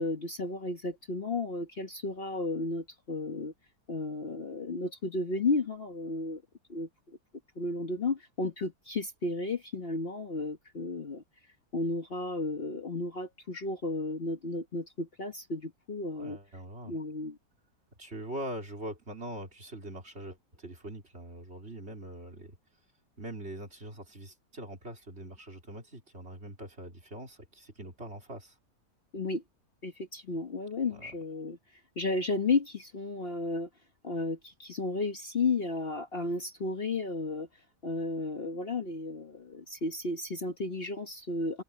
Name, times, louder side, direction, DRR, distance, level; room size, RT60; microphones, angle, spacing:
voice 1, 0.0-3.5 3.9-6.4 6.7-7.2 7.6-11.2 11.7-16.4 16.8-17.4 29.1-29.4 29.8-31.6 32.0-33.7 34.0-37.5 37.8-41.6, left 3 dB, 40° left, 1.4 m, -33 dB
voice 2, 16.1-17.0 18.0-22.6 23.2-28.5 30.8-31.2, right 1 dB, 45° right, 4.1 m, -43 dB
omnidirectional pair, 1.6 m